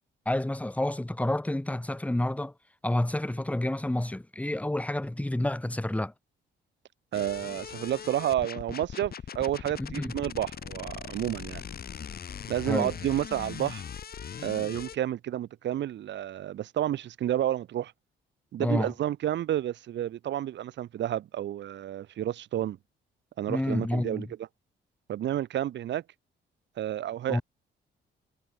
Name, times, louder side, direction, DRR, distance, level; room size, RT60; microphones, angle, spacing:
voice 1, 0.2-2.5 2.8-6.1 9.8-10.1 12.7-12.9 18.6-18.9 23.5-24.3 27.3-27.4, left 1 dB, 5° left, 1.6 m, -29 dB
sound 1, 7.1-15.0, left 8 dB, 50° left, 2.7 m, -40 dB
voice 2, 7.1-11.6 12.5-13.8 14.4-17.9 18.5-22.8 23.4-24.3 25.1-26.0 26.8-27.4, right 12 dB, 65° right, 0.9 m, -30 dB
cardioid pair, 90°, 20 cm